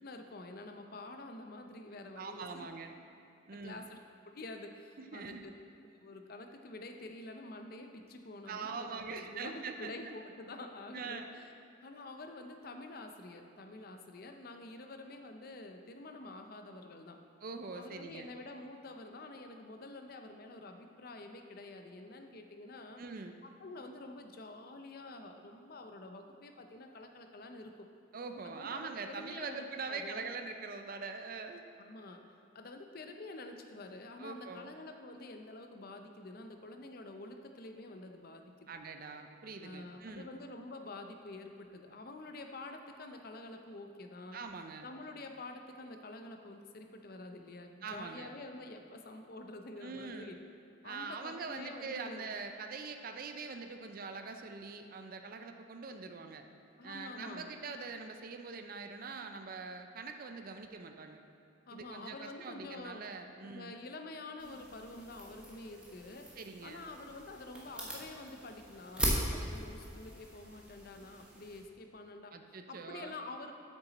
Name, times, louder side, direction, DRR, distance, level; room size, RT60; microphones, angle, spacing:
voice 1, 0.0-2.7 3.6-4.0 4.2-5.5 6.0-11.5 11.8-17.2 17.7-23.0 23.4-27.7 28.4-30.3 31.8-32.2 32.5-38.7 39.6-44.4 44.8-50.4 50.8-52.3 56.8-57.5 61.7-63.0 63.4-66.3 66.6-73.5, left 2 dB, 50° left, 5 dB, 0.6 m, -48 dB
voice 2, 2.2-3.0 3.5-3.9 5.0-5.4 8.5-10.2 10.9-11.3 17.4-18.3 23.0-23.4 28.1-31.7 34.2-34.7 38.7-40.4 44.3-44.9 47.8-48.3 49.8-50.4 50.8-56.4 56.8-61.2 61.7-63.8 66.4-66.8 72.3-73.2, right 4 dB, 45° right, 6 dB, 0.5 m, -43 dB
sound 1, 64.4-71.6, equal, 5° right, 1.2 m, -40 dB
8.2 x 6.8 x 4.1 m, 2.7 s
head